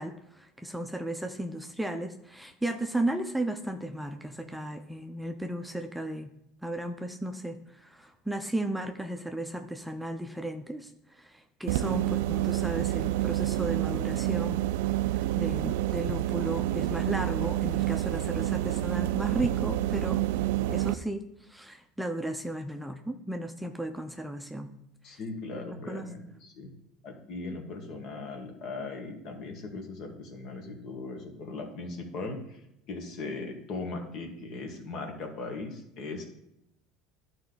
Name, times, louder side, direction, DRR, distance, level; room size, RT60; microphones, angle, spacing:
voice 1, 0.0-6.3 6.6-14.6 15.1-20.2 20.7-24.7 25.1-25.2 25.6-26.0, right 1 dB, 5° right, 5 dB, 0.6 m, -35 dB
sound 1, 11.7-20.9, right 14 dB, 75° right, 0.3 m, -28 dB
voice 2, 25.0-26.7 27.0-32.6 32.9-36.2, left 3 dB, 55° left, 3 dB, 1.9 m, -38 dB
11.5 x 4.3 x 4.0 m, 0.82 s
hypercardioid pair, 85°, 0 cm